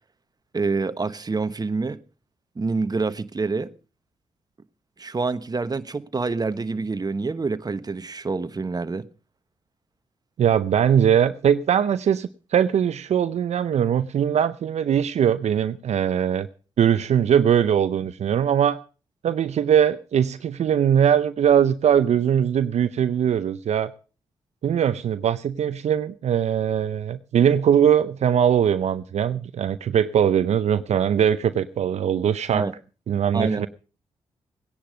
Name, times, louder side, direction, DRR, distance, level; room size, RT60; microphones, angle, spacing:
voice 1, 0.5-2.0 2.6-3.7 5.0-9.1 32.5-32.7 33.3-33.7, right 4 dB, 35° right, 1.1 m, -27 dB
voice 2, 10.4-16.5 16.8-18.8 19.2-23.9 24.6-32.7 33.1-33.7, right 9 dB, 70° right, 0.7 m, -21 dB
17.5 x 10.5 x 5.1 m
supercardioid pair, 45°, 12 cm